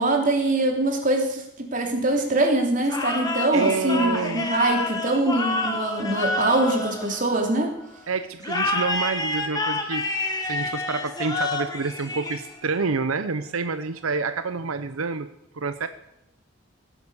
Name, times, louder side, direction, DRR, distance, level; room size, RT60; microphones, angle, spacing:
voice 1, 0.0-7.7, right 2 dB, 40° right, 2 dB, 3.1 m, -23 dB
sound 1, 2.8-7.7 8.4-12.8, left 2 dB, 20° left, 2.0 m, -28 dB
voice 2, 3.5-4.5 8.1-10.1 10.4-15.3 15.5-15.9, right 4 dB, 90° right, 11 dB, 0.8 m, -28 dB
16.5 x 11.0 x 7.1 m, 0.82 s
head